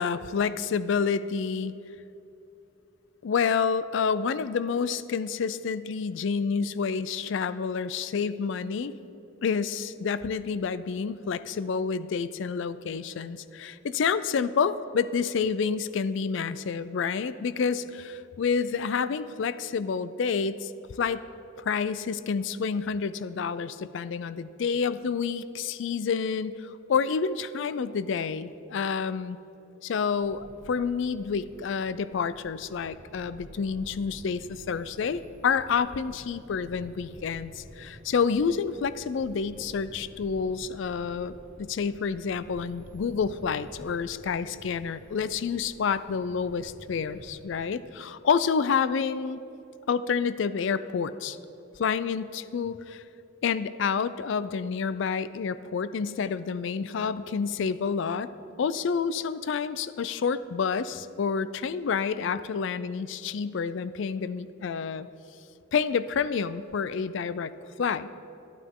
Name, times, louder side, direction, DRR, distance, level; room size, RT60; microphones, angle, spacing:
voice 1, 0.0-1.7 3.2-8.9 9.4-20.7 21.0-21.2 21.6-29.4 29.8-49.4 49.9-51.4 51.8-53.0 53.4-58.3 58.6-65.1 65.7-67.5 67.8-68.1, left 6 dB, 65° left, 15 dB, 0.4 m, -29 dB
sound 1, 30.2-47.5, equal, 35° right, 1.8 m, -50 dB
12.0 x 11.5 x 3.7 m, 2.9 s
head